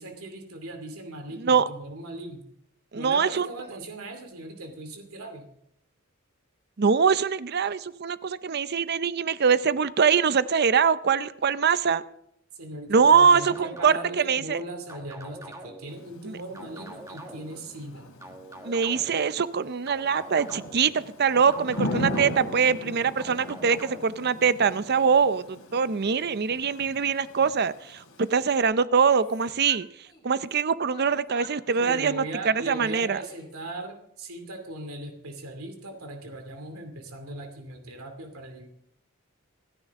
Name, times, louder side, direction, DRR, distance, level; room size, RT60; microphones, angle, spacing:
voice 1, 0.0-2.4 2.9-5.5 12.5-18.1 31.8-38.7, right 2 dB, 80° right, 5 dB, 2.6 m, -39 dB
voice 2, 2.9-3.5 6.8-12.0 12.9-14.6 16.2-16.4 18.6-29.9 30.2-32.2 32.7-33.2, right 6 dB, 50° right, 15 dB, 0.6 m, -23 dB
sound 1, 13.2-14.3 14.9-15.9 16.6-17.6 18.2-19.3 19.9-20.9 21.5-22.6 23.2-24.0, right 1 dB, 15° right, 1.6 m, -43 dB
Thunder / Rain, 15.9-28.6, left 1 dB, 80° left, 3.1 m, -39 dB
Yell, 28.9-30.5 30.9-33.7, left 3 dB, 20° left, 2.5 m, -50 dB
28.5 x 10.0 x 3.7 m, 0.76 s
head